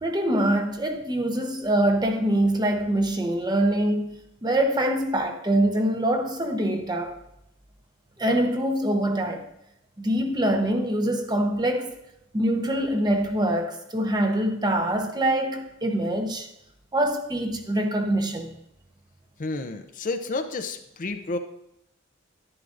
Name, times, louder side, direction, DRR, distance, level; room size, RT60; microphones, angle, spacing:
voice 1, 0.0-4.1 4.4-7.1 8.2-9.4 10.0-12.0 12.3-16.5 16.9-18.5, right 1 dB, 20° right, 0.9 m, -24 dB
voice 2, 19.4-21.4, left 3 dB, 40° left, 0.6 m, -30 dB
11.0 x 11.0 x 2.5 m
head